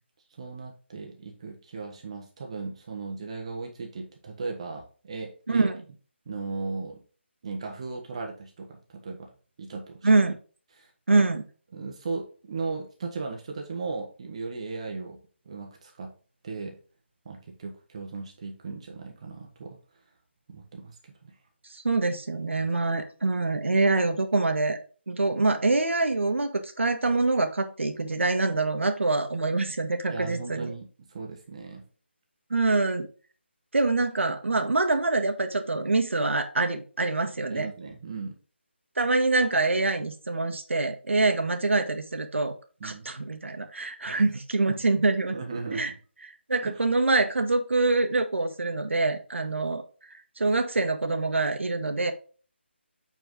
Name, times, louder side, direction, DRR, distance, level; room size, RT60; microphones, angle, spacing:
voice 1, 0.4-5.7 6.3-7.0 7.4-9.3 9.6-10.1 10.7-11.2 11.7-15.2 15.4-16.1 16.4-16.8 17.2-19.8 20.5-20.9 21.2-21.3 30.1-30.9 31.1-31.8 37.5-38.4 42.8-43.1 44.1-44.3 44.7-44.8 45.3-45.9 46.6-46.8, right 4 dB, 30° right, 2 dB, 1.2 m, -37 dB
voice 2, 10.0-10.4 11.1-11.4 21.7-24.8 25.1-30.7 32.5-33.1 33.7-37.7 39.0-42.5 42.8-45.4 45.7-45.9 46.5-49.8 50.4-52.1, right 3 dB, 90° right, 7 dB, 1.6 m, -25 dB
7.9 x 4.5 x 3.7 m, 0.37 s
hypercardioid pair, 170°, 6 cm